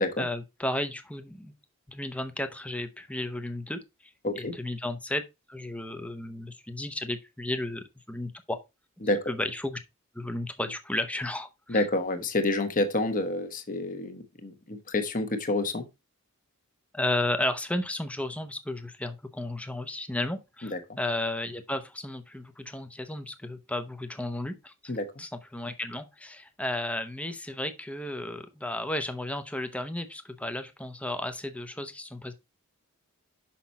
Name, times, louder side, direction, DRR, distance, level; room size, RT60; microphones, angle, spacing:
voice 1, 0.2-1.5 1.9-3.8 4.3-5.2 5.5-8.6 9.3-9.8 10.1-11.9 16.9-24.9 25.2-32.3, left 1 dB, 5° left, 0.8 m, -33 dB
voice 2, 11.7-15.8 20.7-20.8 24.9-25.1, left 2 dB, 40° left, 1.2 m, -28 dB
6.0 x 5.9 x 4.1 m
head